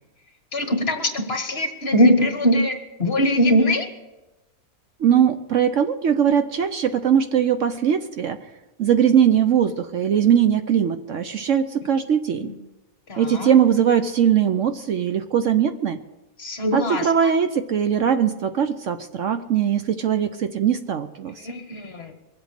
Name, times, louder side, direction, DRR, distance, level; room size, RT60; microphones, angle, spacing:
voice 1, 0.5-3.9 12.4-12.5 13.1-13.5 16.4-17.1 21.4-22.1, equal, 40° left, 5 dB, 1.7 m, -21 dB
voice 2, 5.0-8.4 8.8-12.5 13.2-16.0 16.7-21.5, right 8 dB, 60° right, 9 dB, 1.0 m, -20 dB
23.0 x 8.1 x 6.6 m, 1.0 s
omnidirectional pair, 1.6 m